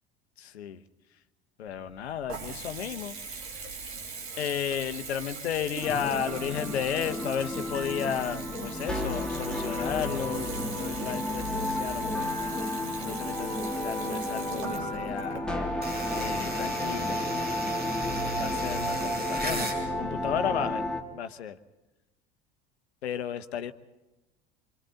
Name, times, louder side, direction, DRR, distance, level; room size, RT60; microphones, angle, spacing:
voice 1, 0.4-0.8 1.6-3.1 4.4-13.5 13.8-15.4 16.1-17.2 18.3-19.7 20.0-20.8 21.1-21.6 23.0-23.7, left 9 dB, 75° left, 11 dB, 1.1 m, -33 dB
Water tap faucet / Bathtub (filling or washing) / Trickle dribble, 1.6-16.5, right 4 dB, 70° right, 3.7 m, -41 dB
sound 1, 5.8-21.0, left 1 dB, ahead, 2.8 m, -32 dB
sound 2, 15.8-19.8, right 1 dB, 30° right, 6.2 m, -36 dB
27.5 x 25.0 x 3.9 m, 1.1 s
figure-of-eight pair, 65°, 33 cm